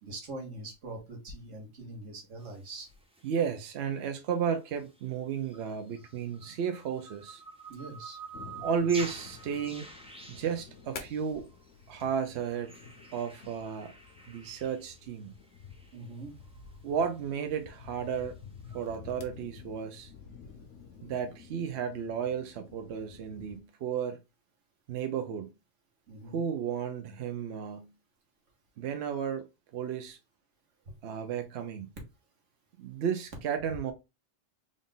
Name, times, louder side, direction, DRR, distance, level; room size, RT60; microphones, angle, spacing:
voice 1, 0.0-2.9 7.7-8.2 15.9-16.4 26.1-26.4 30.9-31.0, right 2 dB, 85° right, 1.6 m, -43 dB
sound 1, 2.4-4.2 4.8-19.0, right 3 dB, 5° right, 0.5 m, -50 dB
voice 2, 3.2-7.4 8.6-9.9 10.3-11.5 11.9-12.7 13.1-13.9 14.3-15.3 16.8-18.4 18.7-20.1 21.0-24.2 24.9-25.5 26.3-27.9 28.8-29.4 29.7-30.2 31.0-31.9 32.8-33.9, right 7 dB, 65° right, 0.8 m, -33 dB
sound 2, 8.3-23.6, left 6 dB, 85° left, 1.2 m, -50 dB
3.8 x 2.5 x 3.7 m
omnidirectional pair, 1.2 m